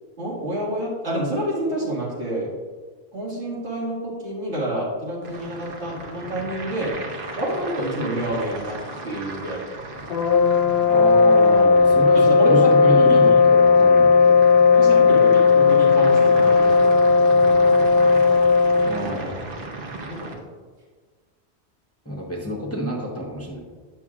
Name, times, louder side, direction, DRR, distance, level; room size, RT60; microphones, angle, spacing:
voice 1, 0.2-2.5 3.1-7.0 7.3-8.8 9.0-9.6 12.1-13.3 14.7-17.7 19.0-19.3 20.1-20.5, right 1 dB, 80° right, -6 dB, 2.3 m, -28 dB
sound 1, 5.2-20.3, right 2 dB, 55° right, 1.0 m, -36 dB
sound 2, 10.1-19.1, left 5 dB, 70° left, 0.8 m, -15 dB
voice 2, 10.9-14.4 18.8-19.4 22.1-23.6, equal, 15° left, -2 dB, 0.7 m, -28 dB
9.1 x 6.0 x 2.4 m, 1.4 s
omnidirectional pair, 1.1 m